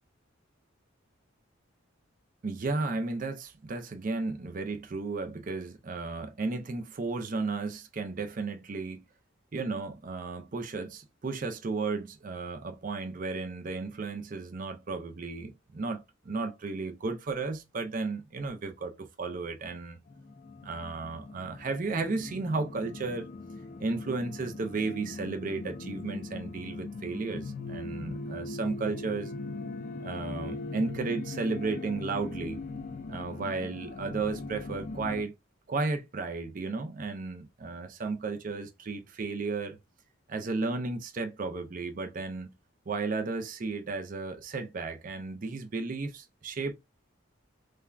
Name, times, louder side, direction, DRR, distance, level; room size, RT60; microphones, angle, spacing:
voice 1, 2.4-9.0 9.5-20.0 20.6-23.3 23.8-29.3 30.0-32.6 33.1-35.3 35.7-39.8 40.3-42.5 42.9-46.7, right 3 dB, 40° right, 0.5 m, -34 dB
sound 1, 20.1-35.2, left 3 dB, 40° left, 0.3 m, -40 dB
3.3 x 2.2 x 2.3 m
head